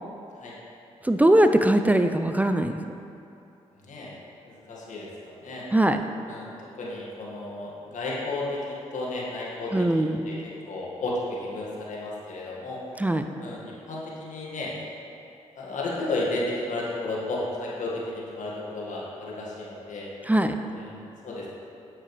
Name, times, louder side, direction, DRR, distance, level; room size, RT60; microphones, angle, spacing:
voice 1, 1.0-2.9 5.7-6.0 9.7-10.4 13.0-13.2 20.3-20.5, right 1 dB, 10° right, 7 dB, 0.5 m, -21 dB
voice 2, 3.7-4.1 4.5-5.7 6.3-8.6 8.9-12.8 13.4-14.7 15.6-20.1 20.7-21.5, left 2 dB, 65° left, -5 dB, 1.9 m, -33 dB
9.5 x 8.4 x 3.3 m, 2.8 s
hypercardioid pair, 45°, 14 cm